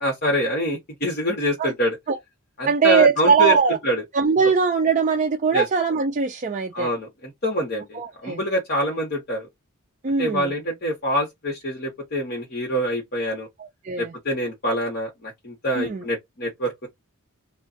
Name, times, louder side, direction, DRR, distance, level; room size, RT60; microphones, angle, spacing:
voice 1, 0.0-2.0 2.6-3.5 3.8-4.0 5.5-5.6 6.7-7.1 7.4-9.5 10.2-13.5 14.0-16.9, equal, 45° left, 1.0 m, -25 dB
voice 2, 2.7-3.8 4.1-6.9 7.9-8.4 10.0-10.5 13.6-14.1 15.7-16.0, right 6 dB, 35° right, 0.4 m, -21 dB
2.4 x 2.4 x 3.8 m
head